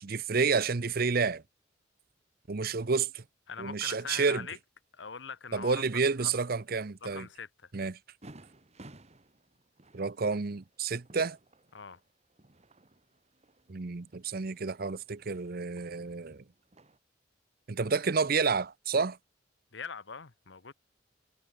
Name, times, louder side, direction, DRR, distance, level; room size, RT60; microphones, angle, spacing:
voice 1, 0.0-1.4 2.5-3.2 3.6-4.5 5.5-7.3 7.7-8.0 9.9-11.4 13.7-16.4 17.7-19.2, right 4 dB, 50° right, 0.7 m, -30 dB
voice 2, 3.5-4.6 4.9-5.8 6.2-6.3 7.0-7.5 11.7-12.0 19.7-20.7, left 5 dB, 70° left, 1.2 m, -42 dB
sound 1, 8.2-17.0, right 1 dB, 35° right, 1.9 m, -57 dB
head